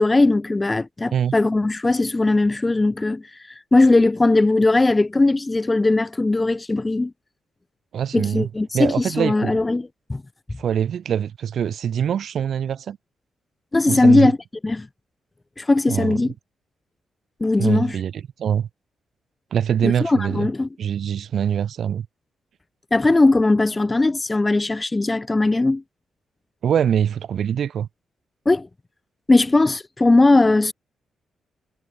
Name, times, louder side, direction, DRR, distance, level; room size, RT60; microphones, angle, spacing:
voice 1, 0.0-3.2 3.7-7.1 8.1-10.2 13.7-14.4 14.6-14.9 15.6-16.3 17.4-18.0 19.8-20.7 22.9-25.8 28.5-28.7 29.3-30.7, left 2 dB, 25° left, 1.9 m, -19 dB
voice 2, 7.9-8.5 8.7-9.6 10.6-13.0 13.9-14.3 15.9-16.2 17.6-18.7 19.5-20.5 20.8-22.0 26.6-27.9, right 8 dB, 65° right, 4.5 m, -23 dB
hypercardioid pair, 45°, 0 cm